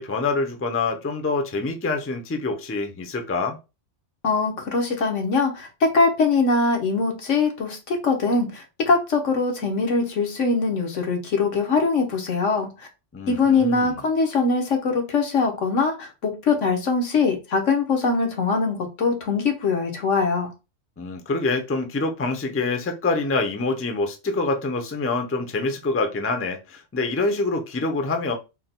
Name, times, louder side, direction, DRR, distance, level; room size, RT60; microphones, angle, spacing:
voice 1, 0.0-3.6 13.1-14.0 21.0-28.3, left 3 dB, 20° left, 0.4 m, -26 dB
voice 2, 4.2-12.9 13.3-20.5, left 4 dB, 85° left, 1.4 m, -22 dB
3.7 x 2.2 x 4.2 m
omnidirectional pair, 1.2 m